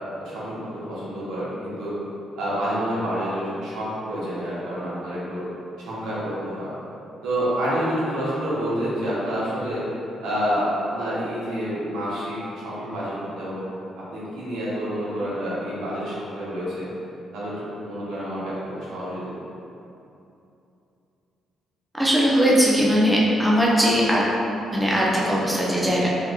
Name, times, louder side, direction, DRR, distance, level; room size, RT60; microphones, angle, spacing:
voice 1, 0.2-1.9 2.4-5.4 5.8-6.7 7.2-9.8 10.2-13.6 14.0-16.9 17.3-19.5, equal, 90° right, -8 dB, 0.9 m, -28 dB
voice 2, 22.0-24.2 24.7-26.1, equal, 5° right, -6 dB, 0.6 m, -19 dB
3.4 x 3.0 x 2.3 m, 2.8 s
cardioid pair, 90°, 0 cm